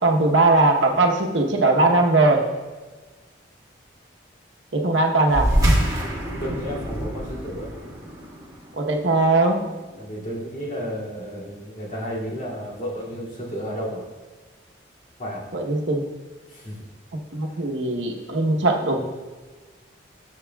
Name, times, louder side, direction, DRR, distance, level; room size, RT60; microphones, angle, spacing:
voice 1, 0.0-2.5 4.7-5.5 8.8-9.6 15.5-16.0 17.3-19.0, right 2 dB, 80° right, 1 dB, 1.0 m, -20 dB
sound 1, 5.3-10.2, equal, 20° right, 1.5 m, -25 dB
voice 2, 6.4-7.7 10.0-14.1 15.2-15.5 16.5-16.8, equal, 45° left, -7 dB, 2.4 m, -32 dB
13.0 x 6.7 x 2.3 m, 1.3 s
head